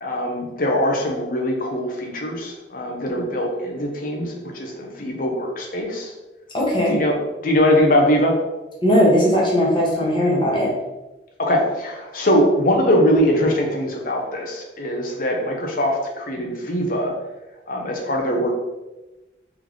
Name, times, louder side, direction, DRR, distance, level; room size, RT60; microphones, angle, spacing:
voice 1, 0.0-6.1 6.9-7.1 7.4-8.3 11.4-17.1 17.7-18.5, equal, 50° left, 1 dB, 0.8 m, -21 dB
voice 2, 6.5-7.0 8.8-10.7, equal, 25° left, -4 dB, 1.0 m, -18 dB
3.5 x 3.2 x 3.6 m, 1.0 s
head